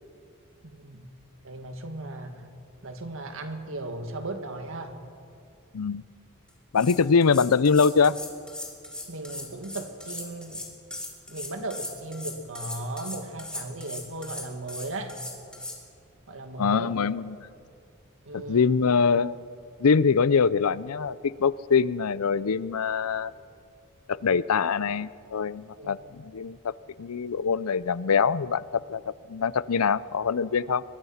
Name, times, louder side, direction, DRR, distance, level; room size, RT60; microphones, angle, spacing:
voice 1, 0.6-1.1 1.4-2.5 2.8-5.1 9.1-10.7 11.3-15.2 16.3-17.0 18.2-18.7 25.8-26.2, right 2 dB, 65° right, 6 dB, 2.0 m, -37 dB
sound 1, 6.5-6.6 6.8-15.8, left 1 dB, 5° left, 3.1 m, -38 dB
voice 2, 6.7-8.1 16.6-17.5 18.3-19.4 19.8-23.3 24.1-26.7 27.0-29.0 29.3-30.8, left 5 dB, 85° left, 18 dB, 0.6 m, -23 dB
24.0 x 22.0 x 5.8 m, 2.4 s
head